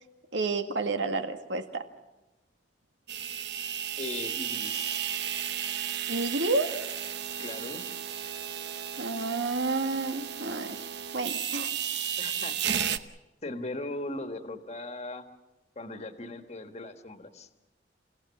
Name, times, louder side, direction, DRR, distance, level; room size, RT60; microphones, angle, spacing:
voice 1, 0.3-1.9 6.1-6.7 9.0-10.9 11.1-11.7, right 3 dB, 90° right, 7 dB, 1.8 m, -30 dB
sound 1, 3.1-13.0, right 9 dB, 65° right, 0.9 m, -34 dB
voice 2, 4.0-4.9 7.4-7.8 12.2-12.8 13.4-15.3 15.7-17.5, left 2 dB, 40° left, 7 dB, 1.5 m, -38 dB
28.5 x 16.5 x 7.2 m, 1.0 s
head